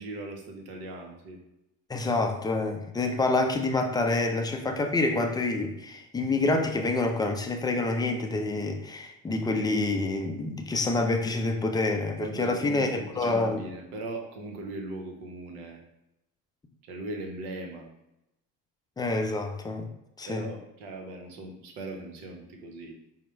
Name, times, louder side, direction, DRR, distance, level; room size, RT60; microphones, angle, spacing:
voice 1, 0.0-1.4 12.2-15.8 16.8-17.9 20.3-23.0, right 2 dB, 75° right, 3 dB, 0.8 m, -39 dB
voice 2, 1.9-13.7 19.0-19.9 20.2-20.5, left 2 dB, 10° left, 4 dB, 0.3 m, -27 dB
4.4 x 2.0 x 3.1 m, 0.86 s
hypercardioid pair, 60°, 46 cm